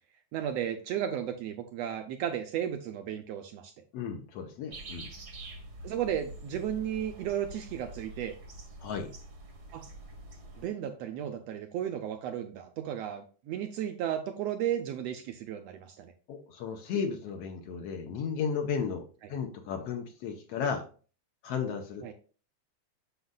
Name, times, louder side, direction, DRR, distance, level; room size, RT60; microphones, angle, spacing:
voice 1, 0.3-3.7 5.8-8.3 9.7-9.9 10.6-16.1 22.0-22.1, right 10 dB, 75° right, 6 dB, 1.5 m, -34 dB
voice 2, 3.9-5.1 8.8-9.1 16.3-19.0 19.3-20.9 21.4-22.1, left 6 dB, 70° left, 4 dB, 1.7 m, -34 dB
sound 1, 4.7-10.7, right 2 dB, 50° right, 1.2 m, -46 dB
7.9 x 6.3 x 2.2 m, 0.38 s
omnidirectional pair, 3.3 m